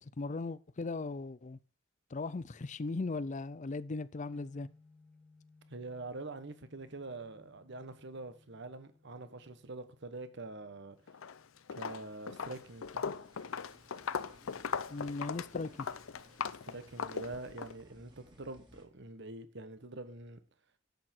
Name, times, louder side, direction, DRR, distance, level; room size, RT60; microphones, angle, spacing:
voice 1, 0.0-1.6 2.1-4.7 14.9-15.9, left 3 dB, 35° left, 0.5 m, -38 dB
sound 1, 4.3-16.4, left 3 dB, 5° left, 2.0 m, -66 dB
voice 2, 5.7-11.0 11.7-13.2 16.6-20.4, right 2 dB, 60° right, 1.2 m, -45 dB
Walk footsteps, 11.1-11.4 11.7-17.7, left 6 dB, 80° left, 0.6 m, -39 dB
sound 2, 12.3-18.9, equal, 20° right, 2.2 m, -61 dB
10.5 x 8.1 x 4.5 m
head